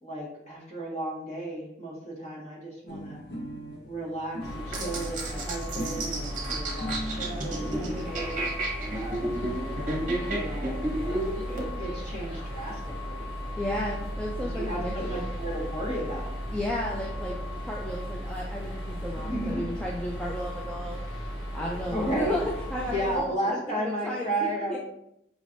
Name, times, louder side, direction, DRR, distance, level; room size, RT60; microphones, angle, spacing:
voice 1, 0.0-3.2 3.8-8.5 8.9-9.4 10.2-13.3 14.4-16.3 19.2-19.6 21.9-22.4 22.9-24.8, right 1 dB, 35° left, -5 dB, 1.5 m, -34 dB
sound 1, 2.9-7.5 8.3-8.4 8.6-8.7 9.0-9.1 9.3-9.9, equal, 60° left, 0.8 m, -40 dB
sound 2, 4.4-23.2, equal, 85° left, 1.2 m, -36 dB
sound 3, 4.7-11.7, right 2 dB, 45° right, 0.9 m, -32 dB
voice 2, 7.7-8.1 13.6-15.2 16.5-17.4 17.6-21.0 21.5-22.4 22.7-23.6 23.8-24.8, equal, 5° left, -3 dB, 0.3 m, -34 dB
5.1 x 3.3 x 2.5 m, 0.80 s
head